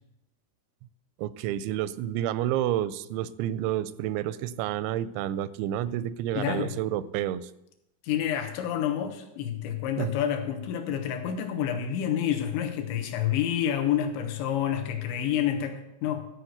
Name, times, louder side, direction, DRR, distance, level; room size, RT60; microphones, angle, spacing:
voice 1, 1.2-7.5 10.0-10.1, right 12 dB, 85° right, 16 dB, 2.9 m, -29 dB
voice 2, 6.4-6.7 8.0-16.3, left 9 dB, 80° left, 5 dB, 3.3 m, -28 dB
13.0 x 4.8 x 7.9 m, 0.84 s
omnidirectional pair, 5.2 m